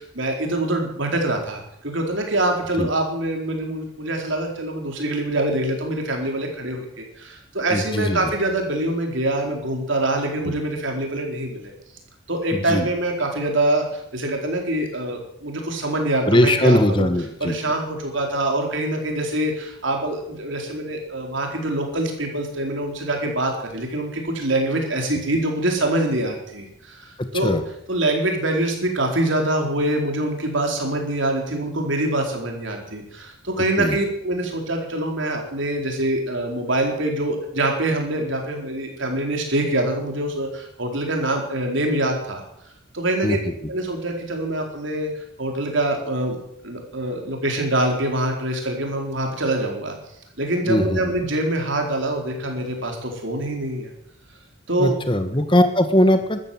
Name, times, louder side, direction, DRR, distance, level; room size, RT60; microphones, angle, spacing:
voice 1, 0.0-11.7 12.3-17.1 17.4-27.1 27.3-27.6 27.9-42.4 42.9-43.4 43.7-45.1 45.4-46.4 46.6-49.9 50.4-53.9 54.7-54.9, right 1 dB, 60° right, 2 dB, 4.3 m, -24 dB
voice 2, 7.7-8.3 10.4-10.6 12.5-12.9 16.3-17.7 27.3-27.6 33.8-34.0 43.2-43.5 50.7-51.1 54.8-56.4, left 1 dB, 25° left, 8 dB, 1.6 m, -20 dB
13.5 x 13.5 x 8.1 m, 0.76 s
head